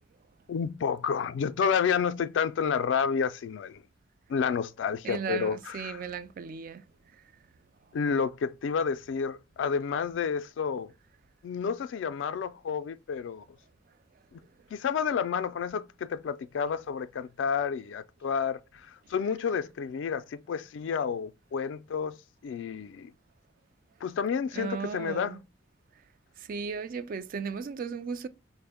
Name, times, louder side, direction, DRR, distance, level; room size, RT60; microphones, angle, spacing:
voice 1, 0.5-3.8 4.3-6.0 7.9-10.9 11.4-13.4 14.3-14.4 14.7-22.2 22.4-23.1 24.0-25.4, left 6 dB, 70° left, 0.3 m, -30 dB
voice 2, 5.0-6.8 24.5-25.4 26.5-28.3, right 6 dB, 50° right, 0.3 m, -36 dB
4.4 x 2.0 x 3.4 m
head